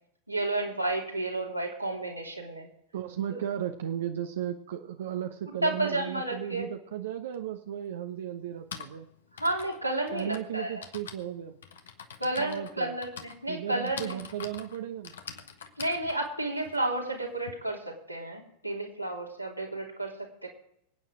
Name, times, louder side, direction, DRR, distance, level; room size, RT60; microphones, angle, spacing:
voice 1, 0.3-2.7 3.3-3.4 5.6-6.7 9.4-10.8 12.2-14.2 15.8-20.5, right 1 dB, 90° right, -2 dB, 3.2 m, -31 dB
voice 2, 2.9-9.1 10.1-11.6 12.4-12.9 13.5-15.1, right 10 dB, 60° right, 4 dB, 0.9 m, -35 dB
Typing, 7.3-7.4 8.4-17.5, left 7 dB, 65° left, 1.3 m, -45 dB
25.0 x 9.3 x 3.8 m, 0.75 s
figure-of-eight pair, 90°, 0 cm